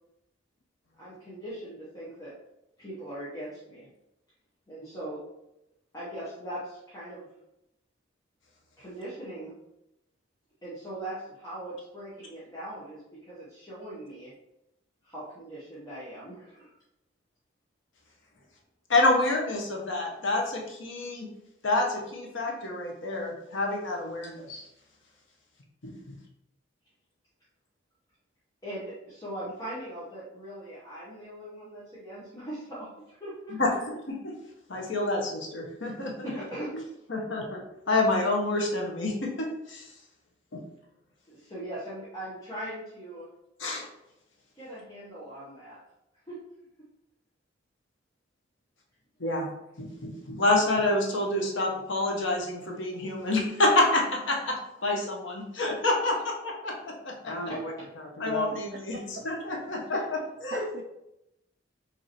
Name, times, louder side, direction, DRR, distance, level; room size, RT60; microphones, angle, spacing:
voice 1, 1.0-2.3 2.8-3.9 4.7-5.2 5.9-7.3 8.8-9.5 10.6-14.3 15.0-16.7 28.6-33.8 36.2-36.8 41.3-43.3 44.6-45.8 46.3-46.4 57.5-57.9, right 1 dB, 20° left, -10 dB, 0.9 m, -40 dB
voice 2, 18.9-21.3 21.6-24.6 25.8-26.1 33.6-34.0 34.2-34.3 34.7-36.1 37.1-39.8 40.5-40.6 43.6-43.9 49.2-49.5 49.8-54.6 54.8-57.7 58.2-59.0 59.2-60.0 60.4-60.6, left 2 dB, 70° left, 0 dB, 0.9 m, -28 dB
voice 3, 58.7-59.3 59.9-60.0 60.5-60.8, right 3 dB, 55° right, 2 dB, 0.4 m, -40 dB
5.1 x 2.8 x 2.9 m, 0.86 s
head